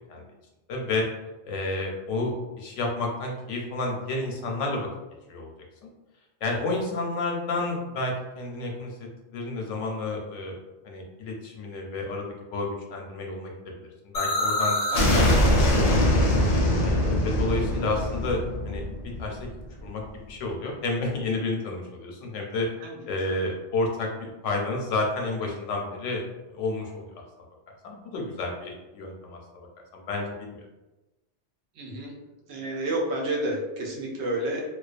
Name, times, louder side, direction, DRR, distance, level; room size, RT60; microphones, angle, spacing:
voice 1, 0.7-1.1 1.5-4.9 5.3-5.5 5.8-5.9 6.4-9.0 9.3-10.5 10.8-13.5 14.0-15.5 15.8-16.0 16.8-18.8 19.2-19.5 19.8-22.7 23.1-26.2 26.5-27.1 27.8-29.4 29.9-30.7, left 2 dB, 90° left, 0 dB, 0.9 m, -30 dB
sound 1, 14.1-19.9, left 1 dB, 70° left, 0.3 m, -23 dB
voice 2, 14.9-15.3 22.8-23.0 31.8-32.2 32.5-34.6, right 1 dB, 70° right, -1 dB, 0.8 m, -30 dB
2.2 x 2.2 x 2.4 m, 1.1 s
omnidirectional pair, 1.2 m